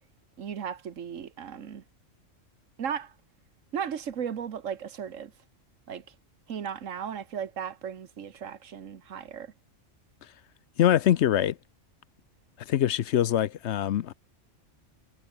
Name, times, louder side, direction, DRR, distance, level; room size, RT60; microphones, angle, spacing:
voice 1, 0.4-1.8 2.8-3.1 3.7-5.3 5.9-6.0 6.5-9.5, right 8 dB, 85° right, 1.5 m, -36 dB
voice 2, 10.8-11.6 12.6-14.1, left 11 dB, 70° left, 0.9 m, -24 dB
omnidirectional pair, 1.3 m